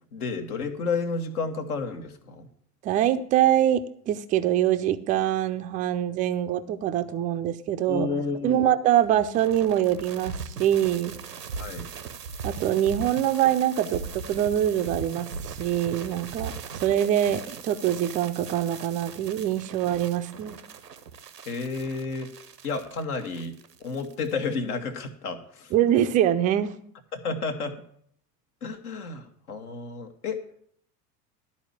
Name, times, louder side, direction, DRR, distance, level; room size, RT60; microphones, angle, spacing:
voice 1, 0.1-2.5 7.9-8.7 11.6-11.9 21.5-22.3 22.6-25.7 27.1-27.8 28.6-30.4, left 4 dB, 65° left, 6 dB, 1.3 m, -31 dB
voice 2, 2.8-8.1 8.4-11.2 12.4-16.5 16.8-20.6 25.7-26.7, right 11 dB, 20° right, 9 dB, 0.4 m, -24 dB
sound 1, 9.0-24.3, right 5 dB, 85° right, 0.7 m, -39 dB
12.0 x 4.2 x 7.9 m, 0.64 s
figure-of-eight pair, 75°, 47 cm